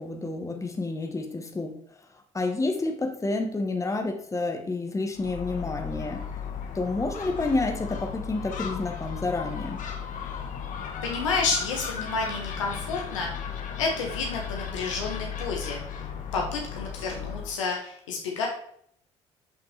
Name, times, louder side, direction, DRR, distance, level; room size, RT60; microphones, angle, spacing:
voice 1, 0.0-2.1 2.3-6.2 6.7-9.8, left 2 dB, 20° left, 4 dB, 1.3 m, -29 dB
Gull seagull, 5.1-17.6, left 7 dB, 55° left, 1.3 m, -36 dB
voice 2, 11.0-13.3 13.8-16.0 16.3-18.5, left 4 dB, 85° left, 0 dB, 1.3 m, -30 dB
8.0 x 5.7 x 3.3 m, 0.64 s
hypercardioid pair, 55°, 16 cm